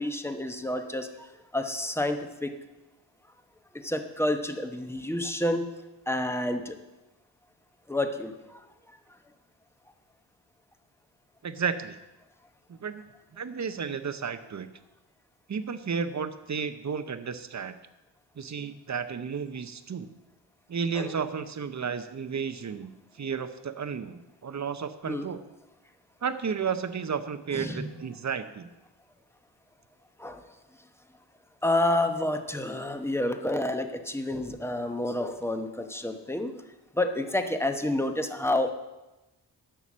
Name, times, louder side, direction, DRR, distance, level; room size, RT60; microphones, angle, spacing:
voice 1, 0.0-2.6 3.7-5.7 6.1-6.8 7.9-8.7 20.9-21.1 25.1-25.3 27.5-27.9 30.2-30.4 31.6-36.5 37.0-38.7, left 1 dB, 5° left, 7 dB, 0.9 m, -29 dB
voice 2, 11.4-12.0 12.7-13.0 13.3-14.7 15.5-17.8 18.4-20.1 20.7-25.4 26.2-28.7, right 6 dB, 40° right, 11 dB, 0.8 m, -33 dB
11.0 x 7.1 x 6.2 m, 1.0 s
wide cardioid pair, 95°, 42 cm